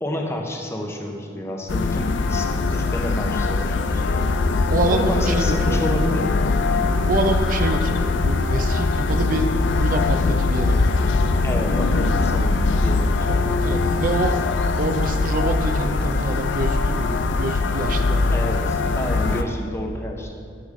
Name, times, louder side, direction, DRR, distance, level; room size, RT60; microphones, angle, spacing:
voice 1, 0.0-2.5 2.7-4.3 4.9-6.5 11.4-13.5 18.3-20.4, left 1 dB, 15° left, 2 dB, 0.8 m, -29 dB
sound 1, 1.7-19.4, left 3 dB, 80° left, 0.5 m, -21 dB
voice 2, 4.7-6.0 7.0-11.3 13.2-14.3 14.8-18.5, right 2 dB, 45° right, 5 dB, 0.5 m, -26 dB
9.9 x 6.8 x 3.7 m, 2.3 s
head